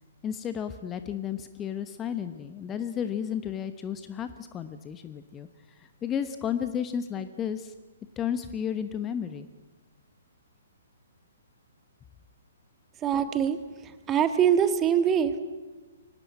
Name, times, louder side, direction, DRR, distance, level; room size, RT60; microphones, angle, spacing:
voice 1, 0.2-5.5 5.8-7.7 8.2-9.5, left 8 dB, 15° left, 10 dB, 1.0 m, -33 dB
voice 2, 13.0-13.6 13.8-15.4, right 8 dB, 20° right, 10 dB, 1.6 m, -24 dB
24.0 x 18.5 x 8.7 m, 1.2 s
figure-of-eight pair, 120°, 0 cm